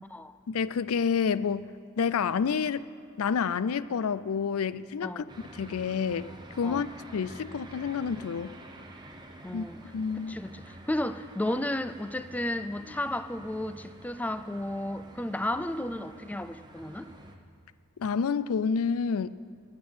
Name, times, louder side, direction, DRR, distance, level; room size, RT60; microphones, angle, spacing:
voice 1, 0.5-1.7 2.0-2.8 3.2-5.2 5.6-6.3 6.6-6.9 7.1-8.5 9.5-9.7 9.9-10.4 18.0-19.3, left 6 dB, 75° left, 16 dB, 0.4 m, -28 dB
voice 2, 5.0-5.3 6.6-6.8 9.4-9.8 10.2-17.1, left 1 dB, 5° left, 12 dB, 0.3 m, -33 dB
sound 1, 5.3-17.4, right 1 dB, 20° right, 0.9 m, -48 dB
20.5 x 8.7 x 5.5 m, 2.3 s
head